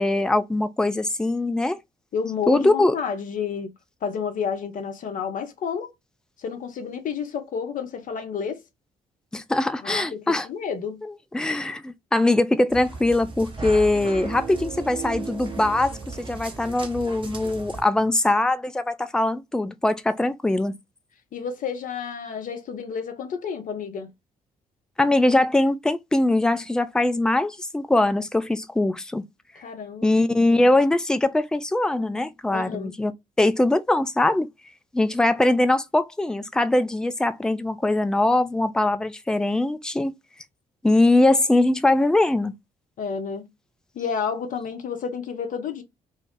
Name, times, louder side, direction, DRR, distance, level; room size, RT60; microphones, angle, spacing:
voice 1, 0.0-1.8 2.5-2.9 9.3-10.5 11.3-20.7 25.0-29.2 30.0-33.1 33.4-34.5 34.9-40.1 40.8-42.5, left 2 dB, 5° left, 0.4 m, -22 dB
voice 2, 2.1-3.7 4.0-5.9 6.4-8.6 9.8-11.0 21.3-24.1 29.6-30.1 32.5-33.0 43.0-43.5 43.9-45.8, left 6 dB, 45° left, 0.8 m, -30 dB
sound 1, 12.7-17.8, right 4 dB, 25° right, 1.2 m, -35 dB
2.6 x 2.3 x 3.6 m
figure-of-eight pair, 45°, 19 cm